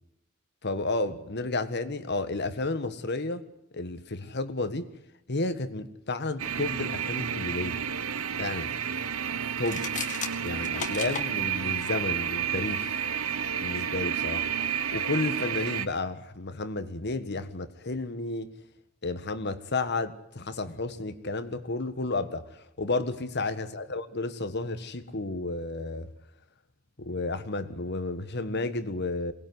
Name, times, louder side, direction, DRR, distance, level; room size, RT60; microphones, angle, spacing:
voice 1, 0.6-3.4 3.7-4.9 5.3-7.8 8.4-8.7 9.6-9.8 10.4-13.0 13.6-14.5 14.9-18.5 19.0-26.1 27.0-29.3, left 2 dB, 55° left, 1.6 m, -32 dB
sound 1, 6.4-15.9, right 8 dB, 80° right, 0.9 m, -31 dB
sound 2, 9.6-11.3, left 6 dB, 40° left, 2.1 m, -35 dB
23.5 x 19.5 x 9.7 m
head